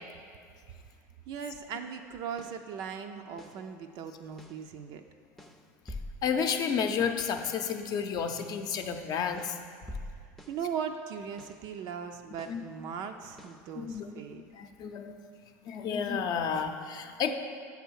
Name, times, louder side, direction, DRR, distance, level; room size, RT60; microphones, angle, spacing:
voice 1, 1.3-5.0 10.5-14.4, right 7 dB, 60° right, 5 dB, 0.4 m, -38 dB
sound 1, 2.1-2.7 3.4-3.7 4.4-4.7 5.4-6.7 7.4-7.7 8.4-8.7 9.4-10.7 11.4-11.7 12.4-12.7 13.4-13.7, left 1 dB, 5° left, 0.5 m, -46 dB
voice 2, 6.2-9.6 12.5-12.6 13.7-15.2 15.7-17.3, left 6 dB, 50° left, 6 dB, 0.6 m, -31 dB
7.4 x 3.4 x 6.3 m, 2.2 s
hypercardioid pair, 90°, 9 cm